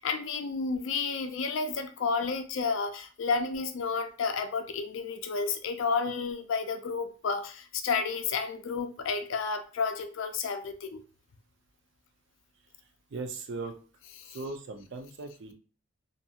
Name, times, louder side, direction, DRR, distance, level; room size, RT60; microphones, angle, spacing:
voice 1, 0.0-11.0 14.2-14.4, left 5 dB, 65° left, 7 dB, 0.4 m, -31 dB
voice 2, 13.1-13.8 14.3-15.5, right 3 dB, 55° right, 5 dB, 0.5 m, -38 dB
2.5 x 2.3 x 2.7 m, 0.39 s
head